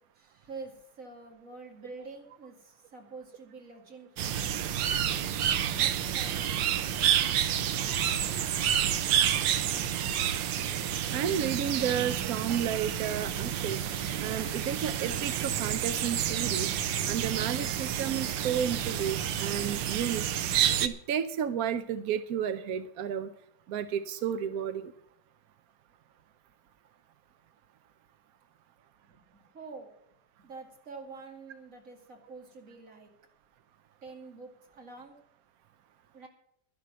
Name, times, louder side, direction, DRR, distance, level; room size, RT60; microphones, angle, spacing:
voice 1, 0.2-4.4 5.1-7.0 29.1-29.9 30.4-33.1 34.0-35.2 36.1-36.3, right 3 dB, 45° right, 2 dB, 2.7 m, -47 dB
sound 1, 4.2-20.9, right 9 dB, 85° right, 1.5 m, -29 dB
voice 2, 11.1-13.8 14.2-16.7 17.1-20.3 20.8-23.3 23.7-24.9, right 8 dB, 70° right, 11 dB, 0.9 m, -32 dB
sound 2, 14.1-20.0, right 1 dB, 15° right, 5.0 m, -52 dB
11.5 x 11.0 x 6.2 m, 0.76 s
omnidirectional pair, 2.0 m